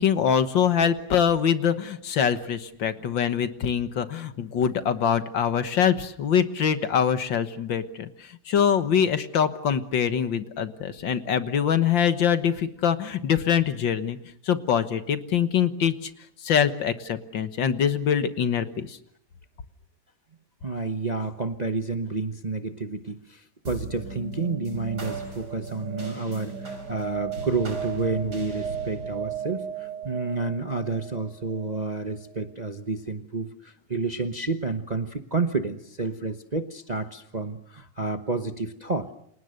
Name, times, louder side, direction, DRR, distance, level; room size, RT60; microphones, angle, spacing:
voice 1, 0.0-14.2 14.4-16.1 16.4-19.0, left 8 dB, 70° left, 10 dB, 2.0 m, -24 dB
voice 2, 20.6-39.1, right 3 dB, 30° right, 7 dB, 0.9 m, -30 dB
sound 1, 23.7-32.4, right 5 dB, 50° right, 5.9 m, -35 dB
30.0 x 27.0 x 6.6 m, 0.73 s
omnidirectional pair, 2.2 m